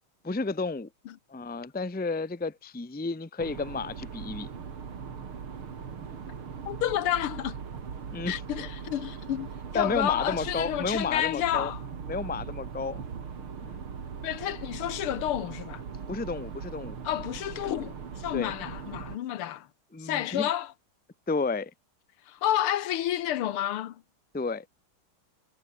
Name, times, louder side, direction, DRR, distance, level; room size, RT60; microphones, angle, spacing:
voice 1, 0.2-0.9 1.3-4.5 8.1-8.4 9.7-11.7 12.1-13.0 13.6-13.8 16.1-17.0 18.3-18.5 19.9-20.5 21.3-21.7 24.3-24.6, left 3 dB, 10° left, 0.6 m, -32 dB
sound 1, 3.4-19.1, right 6 dB, 75° right, 3.3 m, -40 dB
voice 2, 6.7-7.6 8.3-11.8 14.2-15.8 17.0-19.7 20.0-20.7 22.3-24.0, left 12 dB, 80° left, 1.9 m, -30 dB
omnidirectional pair, 2.4 m